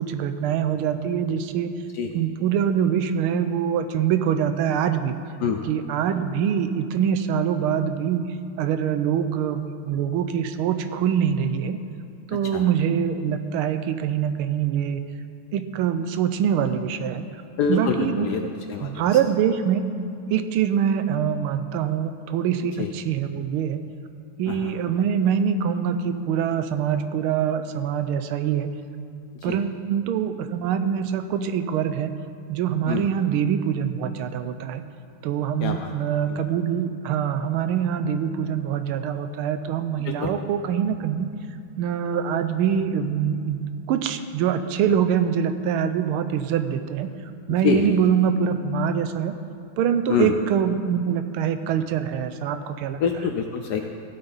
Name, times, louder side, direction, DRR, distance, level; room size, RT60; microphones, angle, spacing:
voice 1, 0.0-1.7 2.1-5.2 5.7-8.2 8.6-11.8 12.3-15.0 15.5-17.2 17.7-18.5 18.8-19.9 20.3-23.8 24.4-28.7 29.4-32.1 32.5-34.8 35.2-41.3 41.8-47.1 47.5-49.4 49.8-53.0, right 8 dB, 85° right, 9 dB, 1.5 m, -24 dB
voice 2, 12.3-12.6 17.6-19.2 22.7-22.9 24.5-24.8 29.3-29.6 32.9-33.1 35.6-35.9 36.3-36.4 40.0-40.3 47.5-48.0 50.1-50.3 53.0-53.8, left 6 dB, 70° left, 4 dB, 1.0 m, -26 dB
15.5 x 8.9 x 4.0 m, 2.4 s
omnidirectional pair, 2.4 m